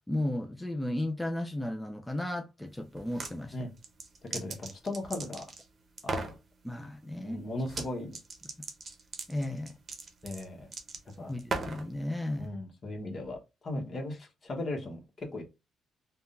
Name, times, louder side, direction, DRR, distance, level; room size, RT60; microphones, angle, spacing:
voice 1, 0.1-3.7 6.6-7.4 9.3-9.8 11.3-12.5, left 1 dB, 5° left, 0.4 m, -34 dB
sound 1, 3.0-3.3 3.8-5.6 6.0-6.4 7.7-7.9 8.1-11.9, right 3 dB, 40° right, 0.8 m, -37 dB
voice 2, 4.3-5.4 6.0-6.3 7.2-8.2 10.2-10.7 11.2-11.3 12.4-15.4, left 2 dB, 45° left, 1.1 m, -37 dB
3.5 x 2.3 x 2.5 m
cardioid pair, 90°, 0 cm